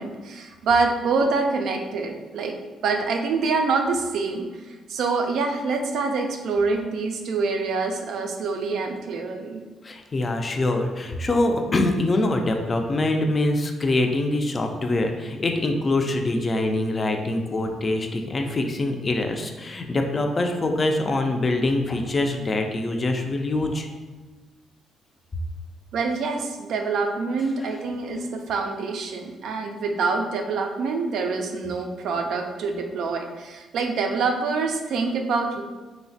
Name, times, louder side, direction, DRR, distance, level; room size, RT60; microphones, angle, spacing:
voice 1, 0.0-2.6 2.8-4.5 4.9-9.6 25.9-35.6, right 4 dB, 75° right, 3 dB, 0.3 m, -26 dB
voice 2, 9.8-23.9 27.6-27.7, left 2 dB, 35° left, 4 dB, 0.3 m, -24 dB
3.0 x 2.1 x 2.6 m, 1.3 s
cardioid pair, 90°, 0 cm